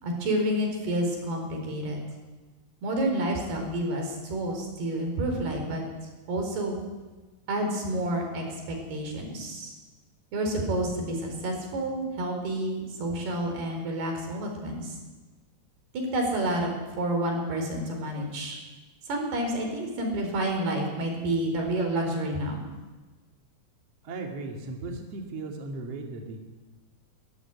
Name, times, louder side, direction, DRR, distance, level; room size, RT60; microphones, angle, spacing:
voice 1, 0.0-2.0 2.8-5.8 6.3-6.8 7.5-9.7 10.3-15.0 15.9-18.6 19.1-22.6, right 1 dB, 80° right, 2 dB, 6.5 m, -29 dB
voice 2, 24.0-26.4, right 3 dB, 45° right, 2 dB, 3.1 m, -36 dB
22.5 x 14.0 x 9.7 m, 1.2 s
omnidirectional pair, 4.5 m